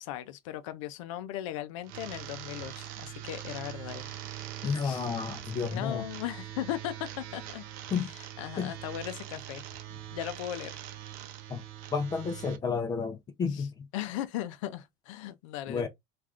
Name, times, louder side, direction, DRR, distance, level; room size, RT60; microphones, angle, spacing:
voice 1, 0.0-4.2 4.8-5.1 5.7-7.6 8.4-9.6 9.9-10.8 13.5-13.7 13.9-15.9, left 12 dB, 80° left, 0.4 m, -37 dB
sound 1, 1.8-12.6, right 12 dB, 60° right, 0.6 m, -42 dB
voice 2, 4.6-6.0 7.9-8.1 8.6-8.7 11.5-11.6 11.9-13.7 15.7-15.9, left 5 dB, 25° left, 0.4 m, -31 dB
3.4 x 2.4 x 2.3 m
supercardioid pair, 125°, 16 cm